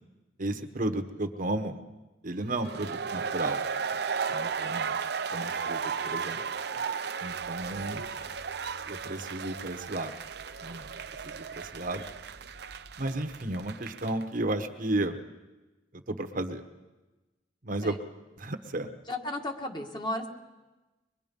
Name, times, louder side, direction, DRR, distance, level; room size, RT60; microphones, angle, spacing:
voice 1, 0.4-1.8 2.2-3.6 4.3-5.0 5.3-6.4 7.2-8.1 8.9-10.2 10.6-10.9 11.2-12.0 13.0-15.2 15.9-16.6 17.6-18.0 18.4-18.9, right 2 dB, 50° right, 7 dB, 1.2 m, -33 dB
sound 1, 2.6-14.2, right 6 dB, 65° right, 0.7 m, -35 dB
sound 2, 7.3-13.7, equal, 80° left, 5.0 m, -55 dB
voice 2, 19.1-20.3, left 1 dB, 25° left, 3 dB, 1.8 m, -34 dB
24.0 x 21.5 x 5.4 m, 1.1 s
head